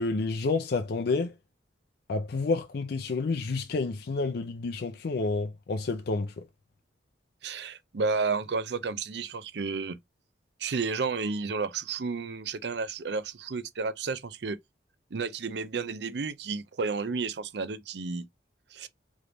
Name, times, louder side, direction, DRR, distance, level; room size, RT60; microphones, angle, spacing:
voice 1, 0.0-1.3 2.1-6.4, left 3 dB, 55° left, 0.4 m, -29 dB
voice 2, 7.4-10.0 10.6-14.6 15.1-18.3 18.7-18.9, right 4 dB, 65° right, 0.5 m, -32 dB
3.4 x 3.1 x 3.8 m
head